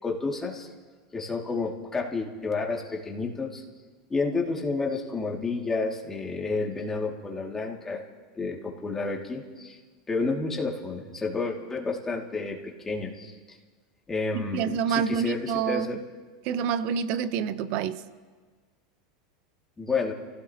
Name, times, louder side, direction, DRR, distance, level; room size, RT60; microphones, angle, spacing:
voice 1, 0.0-0.7 1.1-3.6 4.1-8.0 8.4-9.8 10.1-13.3 14.1-16.0 19.8-20.1, left 3 dB, 15° left, 2.3 m, -30 dB
voice 2, 14.5-15.9 16.4-18.0, right 7 dB, 55° right, 0.8 m, -27 dB
29.0 x 16.0 x 2.9 m
supercardioid pair, 125°, 3 cm